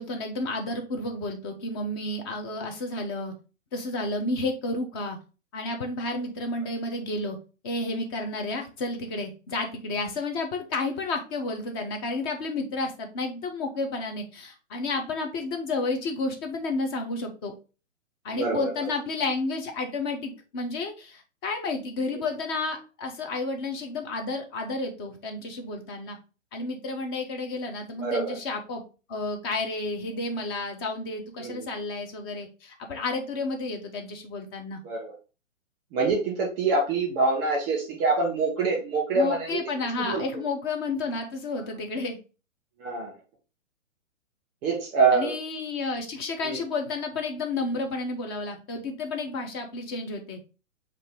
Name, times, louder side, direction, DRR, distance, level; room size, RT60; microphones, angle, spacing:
voice 1, 0.0-3.3 3.7-5.2 5.5-7.4 7.6-17.5 18.2-26.2 26.5-28.8 29.1-34.8 39.1-42.2 45.1-50.4, left 3 dB, 20° left, 4 dB, 0.5 m, -31 dB
voice 2, 18.3-18.9 22.1-22.2 28.0-28.4 31.4-31.7 34.8-35.1 35.9-39.6 40.0-40.4 42.8-43.1 44.6-45.3 46.4-46.6, right 3 dB, 25° right, -1 dB, 2.1 m, -25 dB
5.3 x 2.6 x 3.6 m, 0.33 s
figure-of-eight pair, 120°, 40 cm